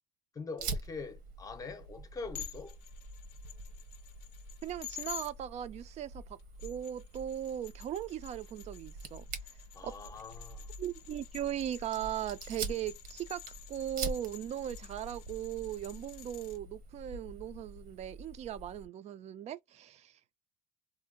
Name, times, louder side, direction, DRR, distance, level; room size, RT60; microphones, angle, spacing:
voice 1, 0.3-2.8 9.7-10.7, left 4 dB, 25° left, 0.7 m, -43 dB
Fire, 0.6-18.9, right 3 dB, 75° right, 1.0 m, -45 dB
sound 1, 2.3-5.3 6.4-16.6, left 12 dB, 90° left, 0.5 m, -50 dB
voice 2, 4.6-9.2 9.8-9.9 10.8-13.4 13.7-20.2, right 11 dB, 45° right, 0.5 m, -38 dB
2.7 x 2.1 x 3.7 m
cardioid pair, 125°, 15 cm